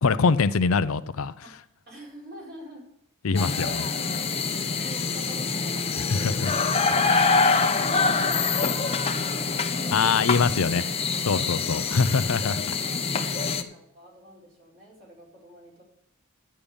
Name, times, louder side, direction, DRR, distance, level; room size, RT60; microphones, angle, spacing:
voice 1, 0.0-1.3 3.2-3.9 6.1-6.5 9.9-10.8 11.3-12.7, left 5 dB, 65° left, 13 dB, 0.5 m, -23 dB
voice 2, 1.4-2.9 4.8-6.7 7.1-10.7 12.6-15.8, equal, 45° right, -4 dB, 4.9 m, -46 dB
sound 1, 3.3-13.6, left 4 dB, 25° left, 0.8 m, -25 dB
11.5 x 8.7 x 5.2 m, 0.74 s
head